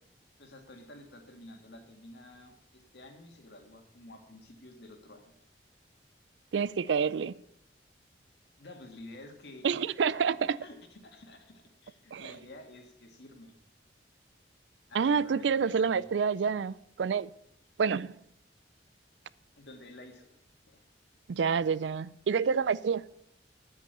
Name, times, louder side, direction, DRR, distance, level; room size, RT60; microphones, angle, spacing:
voice 1, 0.4-5.3 8.6-9.8 10.6-13.6 14.9-16.1 19.6-20.3 20.7-20.8, left 1 dB, 65° left, 2.1 m, -50 dB
voice 2, 6.5-7.3 9.6-10.6 12.1-12.3 14.9-17.3 17.8-18.1 21.3-23.0, right 6 dB, 80° right, 0.4 m, -28 dB
10.0 x 8.3 x 6.8 m
head